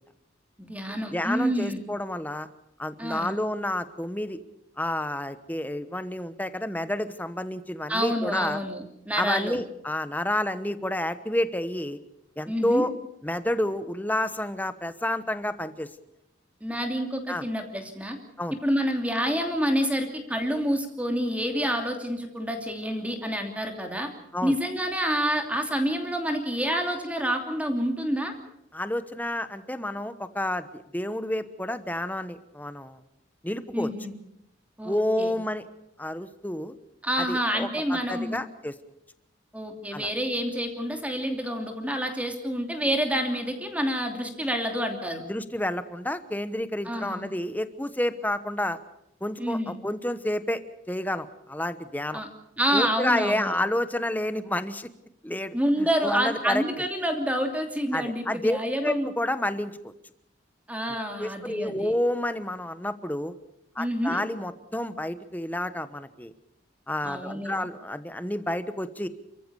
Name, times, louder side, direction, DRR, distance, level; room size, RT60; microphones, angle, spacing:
voice 1, 0.6-1.8 3.0-3.4 7.9-9.6 12.5-12.8 16.6-18.2 18.6-24.1 24.4-28.3 33.7-34.1 34.8-35.4 37.0-38.4 39.5-45.2 46.8-47.2 49.4-49.8 52.1-52.3 52.6-53.6 55.5-59.1 60.7-61.9 63.8-64.2 67.0-67.7, equal, 5° right, 4 dB, 2.8 m, -28 dB
voice 2, 1.1-2.5 2.8-4.4 4.8-8.6 9.2-12.0 12.4-12.9 13.2-15.9 17.3-17.4 18.4-18.6 24.3-24.6 28.7-33.0 33.4-33.9 34.8-35.6 36.0-36.7 37.2-38.7 39.9-40.1 45.3-48.8 49.2-50.6 50.9-52.2 52.7-54.9 55.2-56.6 57.9-59.9 61.2-63.3 63.7-66.3 66.9-69.1, left 1 dB, 10° left, 12 dB, 1.1 m, -29 dB
29.5 x 14.5 x 7.0 m, 0.83 s
head